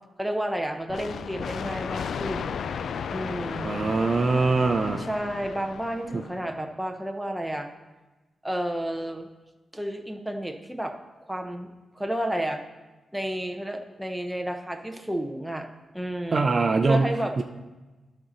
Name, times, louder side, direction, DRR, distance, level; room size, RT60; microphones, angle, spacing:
voice 1, 0.2-2.6 3.1-3.9 5.0-7.7 8.4-9.3 9.7-11.7 11.9-12.6 13.1-15.7 15.9-16.5 16.9-17.4, right 1 dB, 5° right, 4 dB, 0.9 m, -31 dB
sound 1, 0.9-6.5, left 7 dB, 70° left, 0.3 m, -34 dB
voice 2, 3.6-5.0 6.1-6.2 16.3-17.1 17.4-17.5, right 3 dB, 40° right, 5 dB, 0.6 m, -22 dB
11.0 x 4.3 x 6.4 m, 1.2 s
cardioid pair, 105°, 0 cm